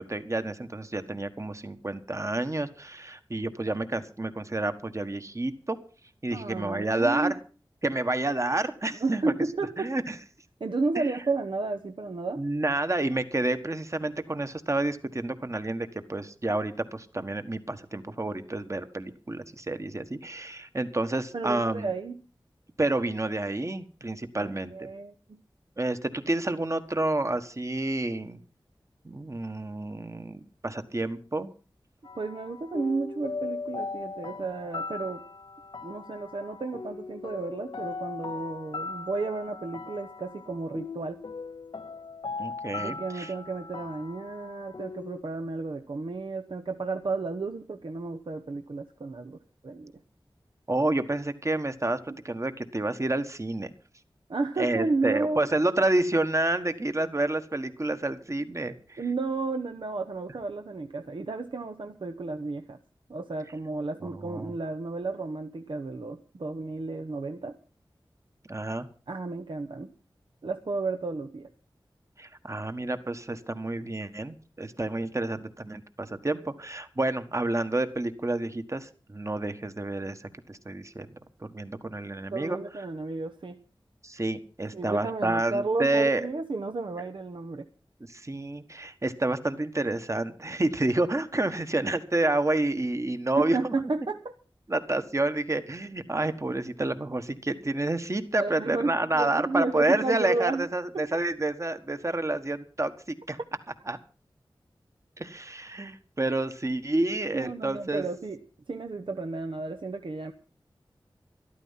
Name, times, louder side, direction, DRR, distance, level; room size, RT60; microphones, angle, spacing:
voice 1, 0.0-5.8 6.2-7.4 7.8-9.3 9.8-10.1 10.9-11.1 12.4-21.9 22.8-24.9 25.8-28.4 29.0-31.5 42.4-43.3 50.7-52.0 52.2-53.7 54.6-59.0 64.0-64.5 68.5-68.9 72.2-82.6 84.0-86.3 88.1-93.7 94.7-103.4 103.9-104.0 105.2-108.0, right 2 dB, 35° right, 10 dB, 1.4 m, -29 dB
voice 2, 6.3-7.3 9.0-9.9 10.6-12.4 21.3-22.2 24.4-25.4 32.1-35.2 35.8-41.2 42.8-49.4 49.6-49.9 52.1-52.2 54.3-55.4 59.0-62.8 63.1-67.6 69.1-69.9 70.4-71.5 82.3-83.6 84.7-87.7 93.4-94.3 98.4-100.7 100.9-101.1 107.3-108.4 108.7-110.3, right 3 dB, 70° right, 6 dB, 0.9 m, -32 dB
sound 1, 32.0-45.2, left 4 dB, 65° left, 0.7 m, -39 dB
13.5 x 12.5 x 5.7 m, 0.38 s
wide cardioid pair, 65°, 9 cm